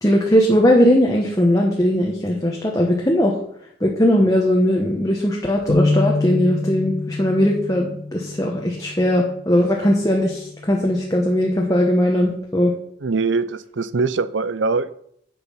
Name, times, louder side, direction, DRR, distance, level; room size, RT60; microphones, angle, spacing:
voice 1, 0.0-3.4 3.8-12.7, equal, 20° left, -1 dB, 1.3 m, -19 dB
sound 1, 5.7-11.9, left 2 dB, 60° left, 1.5 m, -27 dB
voice 2, 13.0-14.9, right 4 dB, 80° right, 15 dB, 0.6 m, -22 dB
10.5 x 7.1 x 5.7 m, 0.69 s
head